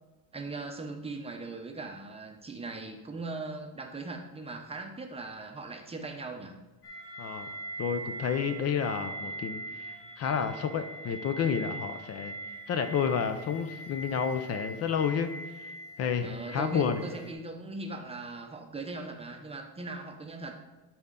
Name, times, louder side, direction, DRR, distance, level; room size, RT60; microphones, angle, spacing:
voice 1, 0.3-6.6 16.2-20.6, right 3 dB, 15° right, 3 dB, 0.7 m, -39 dB
sound 1, 6.8-17.3, right 2 dB, 60° left, 1.5 m, -42 dB
voice 2, 7.2-7.5 7.8-9.6 10.2-12.3 12.7-15.3 16.0-17.0, left 7 dB, 40° left, 8 dB, 0.6 m, -30 dB
12.0 x 4.3 x 3.8 m, 1.1 s
cardioid pair, 145°, 37 cm